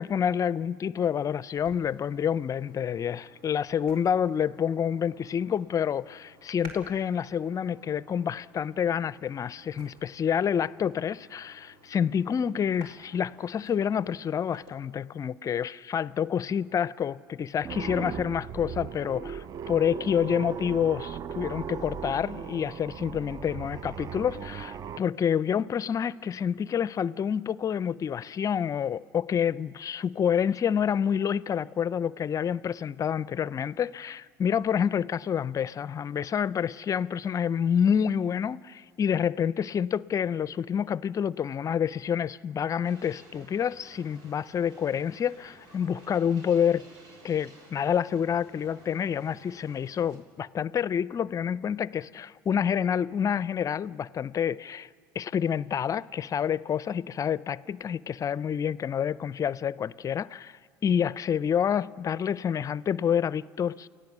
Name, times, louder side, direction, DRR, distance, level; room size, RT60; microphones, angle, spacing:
voice 1, 0.0-46.9 47.2-54.9 55.1-63.9, left 8 dB, 35° left, 0.5 m, -28 dB
sound 1, 1.5-14.7, right 1 dB, 70° right, 4.0 m, -54 dB
sound 2, 17.6-25.0, right 8 dB, 35° right, 0.5 m, -38 dB
sound 3, 42.8-50.2, right 1 dB, 55° right, 6.6 m, -54 dB
29.0 x 16.5 x 7.3 m
hypercardioid pair, 80°, 10 cm